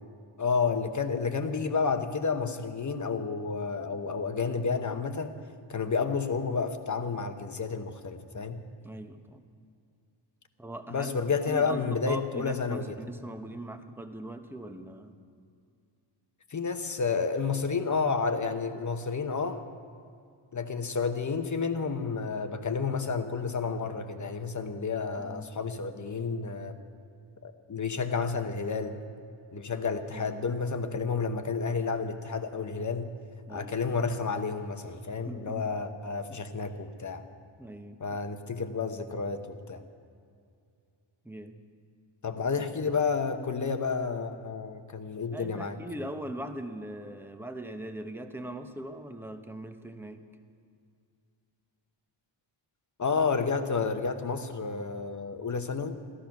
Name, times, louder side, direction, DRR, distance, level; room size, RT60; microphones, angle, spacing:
voice 1, 0.4-5.3 5.7-8.6 10.9-12.8 16.5-19.6 20.5-26.8 27.4-29.0 29.5-33.1 33.5-37.2 38.0-39.8 42.2-45.8 53.0-56.0, left 5 dB, 40° left, 8 dB, 0.9 m, -30 dB
voice 2, 8.8-9.5 10.6-11.1 11.4-15.2 25.2-25.5 30.1-30.5 33.5-33.9 35.2-35.8 36.3-36.4 37.6-38.0 41.2-41.7 42.6-42.7 45.3-50.2, right 1 dB, 5° right, 6 dB, 0.8 m, -40 dB
14.0 x 14.0 x 5.9 m, 2.4 s
wide cardioid pair, 145°, 48 cm